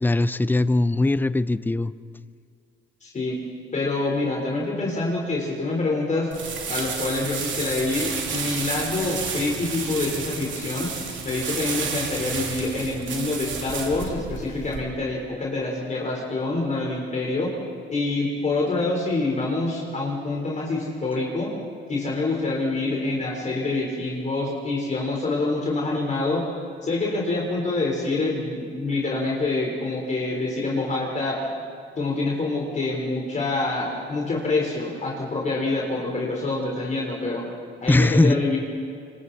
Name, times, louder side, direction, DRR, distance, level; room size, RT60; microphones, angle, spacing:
voice 1, 0.0-1.9 37.9-38.4, left 2 dB, 10° left, 15 dB, 0.5 m, -20 dB
voice 2, 3.0-3.4 3.7-6.3 6.7-10.9 11.2-17.5 17.9-21.5 21.9-26.4 26.8-31.5 32.0-37.5 37.8-38.6, left 2 dB, 35° left, -2 dB, 4.1 m, -26 dB
sound 1, 6.3-14.8, right 5 dB, 70° right, 3.2 m, -31 dB
27.0 x 25.5 x 4.2 m, 2.2 s
cardioid pair, 90°, 20 cm